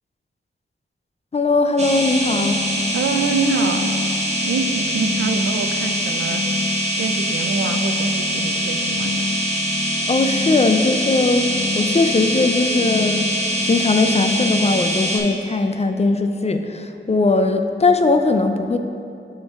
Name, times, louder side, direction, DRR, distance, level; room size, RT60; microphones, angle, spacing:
voice 1, 1.3-2.6 10.1-13.3 13.6-18.8, left 3 dB, 35° left, 7 dB, 0.4 m, -19 dB
sound 1, 1.8-15.2, equal, 35° right, 1.2 m, -23 dB
voice 2, 2.9-3.9 4.4-6.4 7.0-9.2, right 4 dB, 85° right, 6 dB, 0.4 m, -25 dB
9.1 x 5.2 x 2.4 m, 2.6 s
wide cardioid pair, 70°, 20 cm